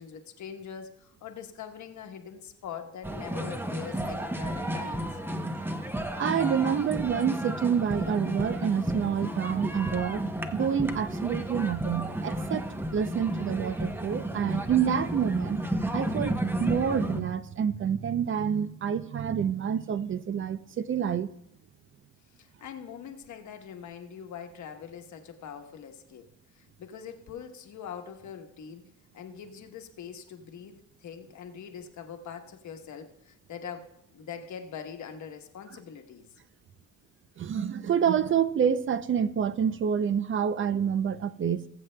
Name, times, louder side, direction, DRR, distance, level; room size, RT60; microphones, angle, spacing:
voice 1, 0.0-5.1 22.4-26.3 26.6-28.8 29.1-36.3, left 7 dB, 70° left, 1.2 m, -43 dB
sound 1, 3.0-17.2, right 1 dB, 5° right, 0.7 m, -32 dB
voice 2, 6.2-10.3 10.5-15.6 15.9-21.3 37.4-41.7, right 8 dB, 45° right, 0.5 m, -28 dB
20.5 x 7.6 x 2.2 m
cardioid pair, 90°, 30 cm